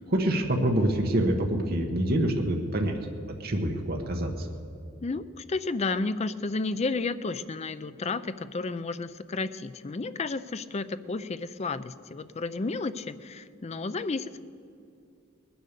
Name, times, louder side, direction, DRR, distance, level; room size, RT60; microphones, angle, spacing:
voice 1, 0.1-3.0 3.4-4.5, right 1 dB, 45° right, 2 dB, 1.3 m, -26 dB
voice 2, 5.0-14.4, left 3 dB, 30° left, 13 dB, 0.4 m, -32 dB
20.0 x 10.0 x 6.8 m, 2.5 s
head